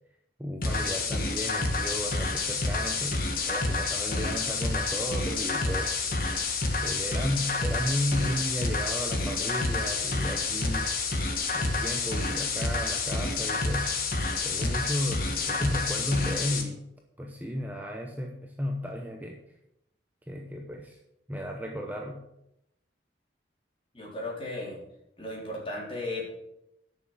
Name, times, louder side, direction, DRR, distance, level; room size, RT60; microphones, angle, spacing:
voice 1, 0.4-6.1 6.8-10.9 11.5-13.9 14.4-16.8 17.2-19.4 20.3-21.0 21.3-22.2, left 1 dB, 10° right, 1 dB, 0.9 m, -34 dB
sound 1, 0.6-16.6, left 3 dB, 50° left, 1.6 m, -29 dB
voice 2, 23.9-24.8 25.2-26.3, left 2 dB, 30° left, -3 dB, 3.9 m, -35 dB
10.5 x 6.4 x 7.4 m, 0.83 s
head